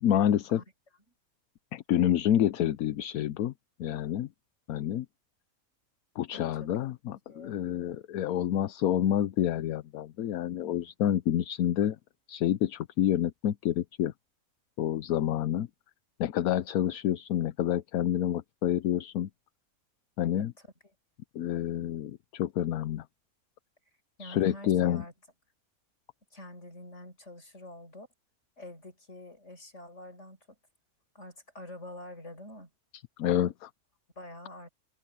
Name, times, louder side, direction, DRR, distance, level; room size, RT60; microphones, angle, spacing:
voice 1, 0.0-0.6 1.7-3.5 3.8-4.3 4.7-5.1 6.2-12.0 12.3-14.1 14.8-15.7 16.2-19.3 20.2-20.5 21.3-23.0 24.2-25.0 32.9-33.7, left 11 dB, 80° left, 1.1 m, -28 dB
voice 2, 6.6-6.9 7.3-7.6 20.4-20.5 24.2-25.1 26.3-28.1 28.6-30.4 31.1-32.7 34.2-34.7, left 1 dB, 50° left, 8.0 m, -46 dB
omnidirectional pair, 1.5 m